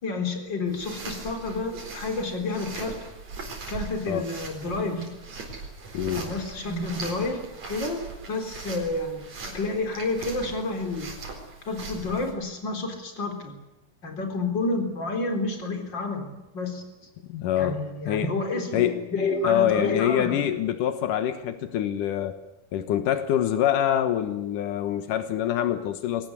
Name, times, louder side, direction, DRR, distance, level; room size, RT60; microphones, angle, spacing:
voice 1, 0.0-3.0 3.7-5.1 6.1-11.2 11.7-13.5 14.0-16.8 17.6-20.4, left 3 dB, 35° left, 5 dB, 4.6 m, -30 dB
sound 1, 0.7-12.3, right 3 dB, 60° right, 5.6 m, -40 dB
voice 2, 5.9-6.3 17.3-17.8 18.1-18.3 18.7-19.0 19.4-22.4 22.7-26.3, left 10 dB, 85° left, 10 dB, 2.8 m, -25 dB
24.0 x 18.5 x 9.7 m, 1.0 s
omnidirectional pair, 3.6 m